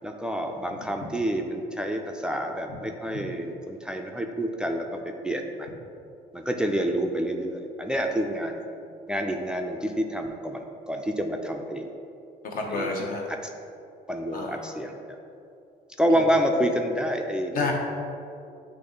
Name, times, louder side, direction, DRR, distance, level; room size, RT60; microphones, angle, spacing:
voice 1, 0.0-5.7 6.3-8.6 9.1-10.6 10.9-11.9 12.7-12.9 13.3-13.4 14.1-15.0 16.0-17.7, equal, 5° right, 3 dB, 0.4 m, -28 dB
voice 2, 12.5-13.2 14.3-14.6 17.5-17.7, left 3 dB, 55° left, 0 dB, 1.1 m, -29 dB
8.6 x 3.0 x 3.9 m, 2.6 s
cardioid pair, 110°, 17 cm